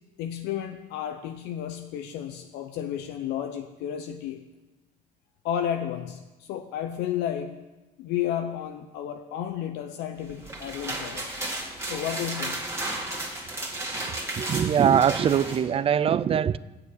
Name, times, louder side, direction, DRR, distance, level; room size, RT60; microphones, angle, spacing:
voice 1, 0.2-4.4 5.4-7.6 8.0-11.5 11.8-12.6, left 10 dB, 85° left, 0.7 m, -32 dB
sound 1, 10.3-15.6, right 1 dB, 15° right, 2.2 m, -33 dB
voice 2, 14.4-16.6, right 8 dB, 35° right, 0.4 m, -22 dB
8.8 x 7.0 x 8.4 m
cardioid pair, 110°, 17 cm